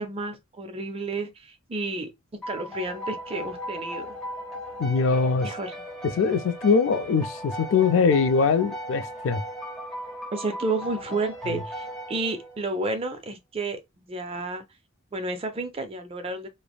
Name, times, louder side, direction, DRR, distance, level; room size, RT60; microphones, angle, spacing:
voice 1, 0.0-2.1 2.5-4.1 5.4-5.7 10.3-14.6 15.1-16.5, right 2 dB, 25° right, 0.4 m, -31 dB
sound 1, 2.4-12.8, equal, 5° left, 0.7 m, -37 dB
voice 2, 4.8-5.5 6.2-9.4, left 5 dB, 65° left, 0.3 m, -22 dB
3.2 x 2.0 x 2.2 m
head